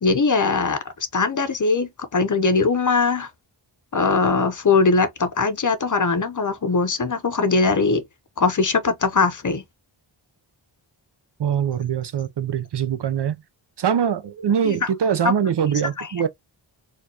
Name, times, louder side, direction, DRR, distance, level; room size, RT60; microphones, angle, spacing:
voice 1, 0.0-0.8 1.1-3.3 3.9-8.0 8.4-9.6 14.6-14.9 15.2-15.3 16.0-16.1, left 4 dB, 40° left, 0.7 m, -20 dB
voice 2, 11.4-13.4 13.8-16.3, right 8 dB, 60° right, 0.5 m, -23 dB
4.3 x 2.4 x 2.8 m
wide cardioid pair, 90°, 48 cm